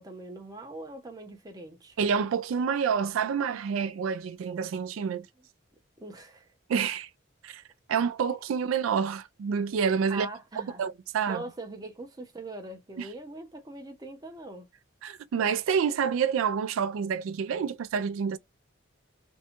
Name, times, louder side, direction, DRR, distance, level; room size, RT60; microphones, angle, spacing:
voice 1, 0.0-2.0 6.0-6.5 10.1-10.8 11.3-14.7, right 2 dB, 20° right, 0.5 m, -42 dB
voice 2, 2.0-5.3 6.7-7.1 7.4-7.6 7.9-10.3 10.8-11.4 13.0-13.1 15.0-18.4, right 6 dB, 85° right, 0.3 m, -28 dB
2.6 x 2.2 x 2.8 m
head